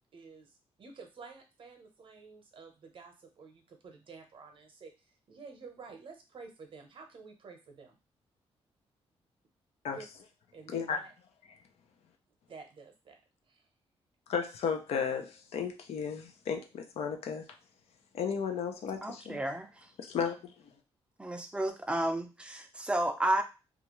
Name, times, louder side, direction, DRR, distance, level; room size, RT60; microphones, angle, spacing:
voice 1, 0.1-8.0 9.9-10.0 10.5-11.1 12.5-13.2 13.5-13.6, right 4 dB, 55° right, 4 dB, 0.8 m, -51 dB
voice 2, 14.3-17.5 18.1-19.4 20.0-20.5, left 6 dB, 70° left, 4 dB, 0.5 m, -34 dB
voice 3, 19.0-19.7 21.2-23.4, right 1 dB, 10° right, 6 dB, 0.4 m, -31 dB
2.4 x 2.2 x 2.9 m, 0.28 s
cardioid pair, 95°, 11 cm